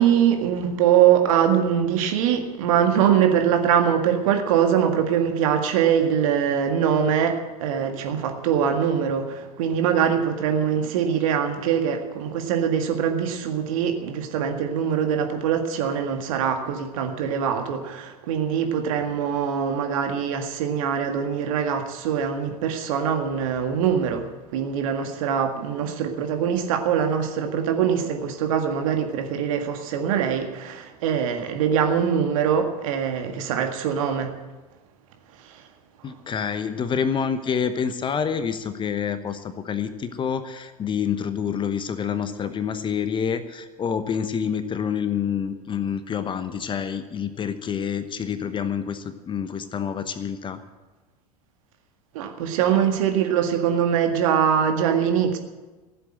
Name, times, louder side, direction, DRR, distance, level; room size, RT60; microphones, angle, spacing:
voice 1, 0.0-34.3 35.4-35.6 52.1-55.4, right 8 dB, 60° right, 5 dB, 1.8 m, -23 dB
voice 2, 36.0-50.6, left 7 dB, 25° left, 11 dB, 1.0 m, -27 dB
15.0 x 7.9 x 9.0 m, 1.2 s
figure-of-eight pair, 80°, 20 cm